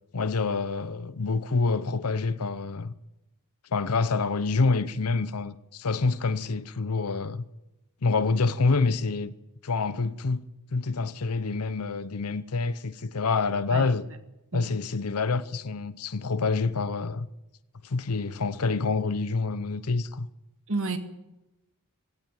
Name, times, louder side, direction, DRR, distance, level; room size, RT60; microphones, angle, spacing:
voice 1, 0.1-2.9 3.7-7.4 8.0-9.3 9.6-14.1 14.5-17.3 17.8-20.3, left 4 dB, 80° left, 0.8 m, -27 dB
voice 2, 13.7-13.9 14.5-14.7 20.7-21.0, right 3 dB, 65° right, 2.0 m, -30 dB
18.0 x 16.0 x 9.4 m
head